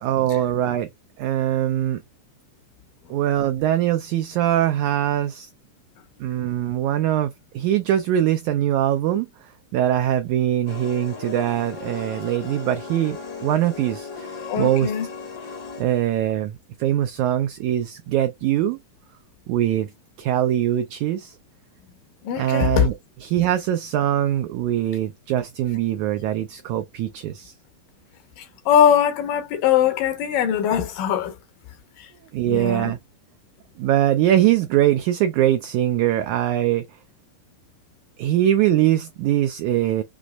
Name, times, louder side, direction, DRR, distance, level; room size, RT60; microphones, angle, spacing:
voice 1, 0.0-0.9 1.2-2.0 3.1-5.5 6.2-14.9 15.8-18.8 19.5-19.9 20.2-21.4 22.4-22.9 23.2-27.5 32.3-33.0 33.8-36.8 38.2-40.0, right 12 dB, 85° right, 1.7 m, -22 dB
sound 1, 10.7-15.8, left 5 dB, 60° left, 1.0 m, -36 dB
voice 2, 14.5-15.1 22.2-22.9 28.4-31.3 32.0-32.1 32.5-32.9, left 9 dB, 75° left, 2.6 m, -21 dB
6.1 x 3.0 x 2.3 m
omnidirectional pair, 4.0 m